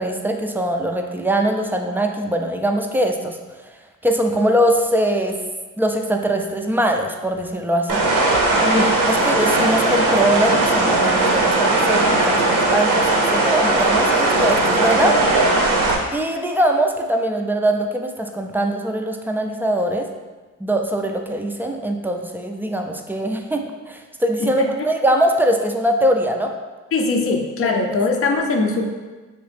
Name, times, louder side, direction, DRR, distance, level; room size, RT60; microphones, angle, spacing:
voice 1, 0.0-3.4 4.0-5.4 5.8-15.2 16.1-20.1 20.6-26.5 27.6-27.8, right 1 dB, 5° right, 3 dB, 0.3 m, -22 dB
sound 1, 7.9-16.0, right 2 dB, 85° right, 0.7 m, -18 dB
voice 2, 24.4-24.9 26.9-28.8, left 3 dB, 40° left, 3 dB, 0.5 m, -21 dB
3.1 x 2.9 x 3.2 m, 1.3 s
supercardioid pair, 60°, 34 cm